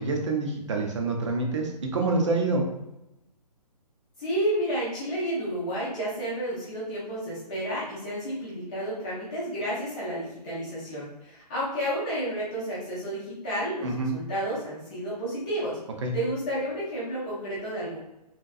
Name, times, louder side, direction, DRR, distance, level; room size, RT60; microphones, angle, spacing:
voice 1, 0.0-2.6 13.8-14.1 16.0-16.1, right 3 dB, 45° right, 1 dB, 0.5 m, -27 dB
voice 2, 4.2-15.8 16.1-18.0, right 1 dB, 10° left, -9 dB, 0.4 m, -31 dB
2.6 x 2.2 x 2.3 m, 0.93 s
hypercardioid pair, 165°, 21 cm